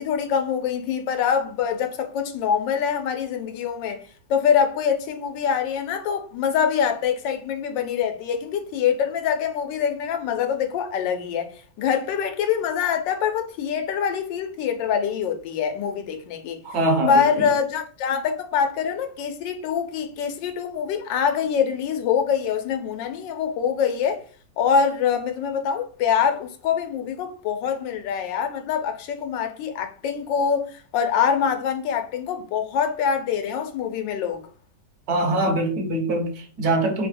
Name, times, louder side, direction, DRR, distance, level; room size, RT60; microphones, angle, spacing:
voice 1, 0.0-4.0 4.3-11.5 11.8-16.6 17.1-24.2 24.6-34.4, left 7 dB, 90° left, 1.3 m, -24 dB
voice 2, 16.6-17.3 35.1-37.1, right 1 dB, 65° right, 1.1 m, -23 dB
3.5 x 2.2 x 4.1 m
omnidirectional pair, 2.0 m